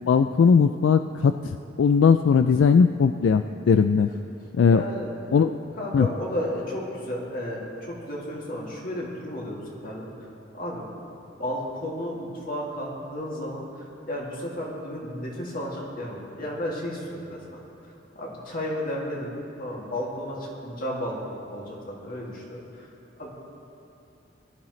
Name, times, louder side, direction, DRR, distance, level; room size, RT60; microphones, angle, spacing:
voice 1, 0.1-4.1 4.6-4.8 5.3-5.6 5.9-6.1, left 6 dB, 80° left, 9 dB, 0.3 m, -19 dB
voice 2, 4.7-5.3 5.8-10.1 10.5-10.9 11.4-17.6 18.1-22.9 23.2-23.3, left 1 dB, 50° left, -3 dB, 2.4 m, -33 dB
18.5 x 12.0 x 3.2 m, 3.0 s
head